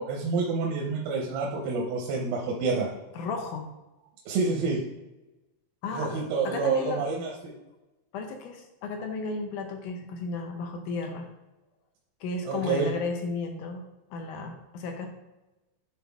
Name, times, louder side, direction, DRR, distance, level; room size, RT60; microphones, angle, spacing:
voice 1, 0.0-2.9 4.3-4.8 5.9-7.5 12.5-12.9, right 4 dB, 90° right, -1 dB, 2.8 m, -28 dB
voice 2, 3.1-3.7 5.8-7.0 8.1-11.3 12.2-13.8 14.1-15.1, left 3 dB, 75° left, 3 dB, 2.1 m, -34 dB
10.0 x 4.5 x 3.5 m, 1.0 s
omnidirectional pair, 4.2 m